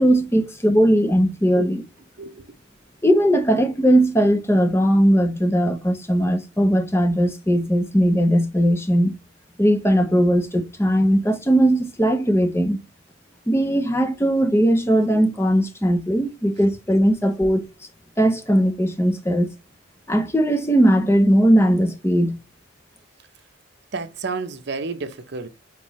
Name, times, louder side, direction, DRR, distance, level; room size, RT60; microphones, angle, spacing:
voice 1, 0.0-1.8 3.0-9.1 9.6-12.8 13.5-17.6 18.2-19.5 20.1-22.4, equal, 10° left, 0.6 m, -19 dB
voice 2, 2.2-2.5 23.9-25.5, right 4 dB, 50° right, 0.6 m, -30 dB
4.4 x 4.0 x 3.0 m
head